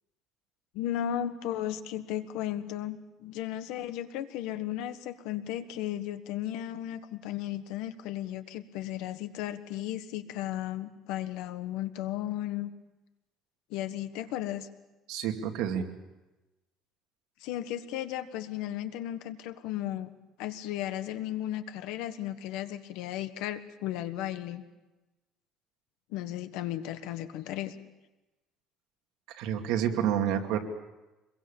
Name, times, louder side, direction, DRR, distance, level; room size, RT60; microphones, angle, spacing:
voice 1, 0.7-12.7 13.7-14.7 17.4-20.1 20.4-24.6 26.1-27.7, left 12 dB, 85° left, 10 dB, 1.4 m, -35 dB
voice 2, 15.1-15.9 29.3-30.6, right 9 dB, 80° right, 3 dB, 2.4 m, -29 dB
25.0 x 22.0 x 7.1 m, 1.1 s
cardioid pair, 165°, 0 cm